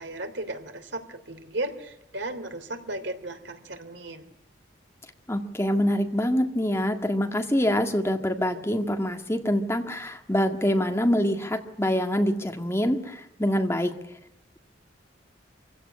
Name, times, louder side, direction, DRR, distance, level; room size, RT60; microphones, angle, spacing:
voice 1, 0.0-4.2, right 2 dB, 70° right, 8 dB, 2.9 m, -35 dB
voice 2, 5.3-13.9, equal, 15° left, 5 dB, 1.8 m, -25 dB
25.5 x 16.5 x 9.9 m, 0.83 s
head